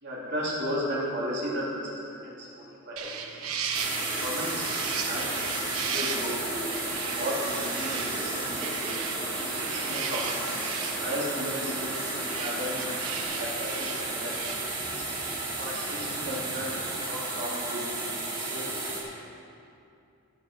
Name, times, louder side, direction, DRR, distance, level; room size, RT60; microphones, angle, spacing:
voice 1, 0.0-3.5 4.1-6.4 6.8-8.8 9.3-10.5 10.9-14.4 14.8-15.0 15.6-18.9, equal, 55° right, -6 dB, 3.3 m, -35 dB
sound 1, 3.0-17.0, right 6 dB, 80° right, 1.0 m, -37 dB
sound 2, 3.7-13.2, equal, 10° left, 3.1 m, -43 dB
sound 3, 3.7-19.0, right 2 dB, 20° right, 2.5 m, -33 dB
16.0 x 6.9 x 6.4 m, 2.6 s
head